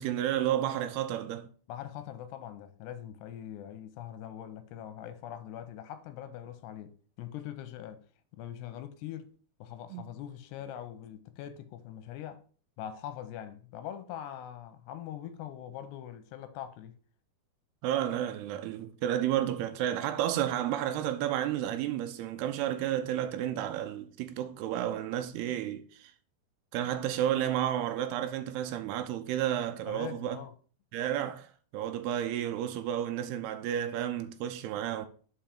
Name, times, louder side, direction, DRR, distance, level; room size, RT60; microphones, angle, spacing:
voice 1, 0.0-1.5 9.9-10.0 17.8-26.1 26.7-30.4 30.9-35.1, right 11 dB, 80° right, 2.5 m, -31 dB
voice 2, 1.7-8.0 8.3-9.3 9.6-12.4 12.8-16.9 29.9-30.5, left 11 dB, 90° left, 2.9 m, -42 dB
5.8 x 5.1 x 5.8 m
omnidirectional pair, 4.8 m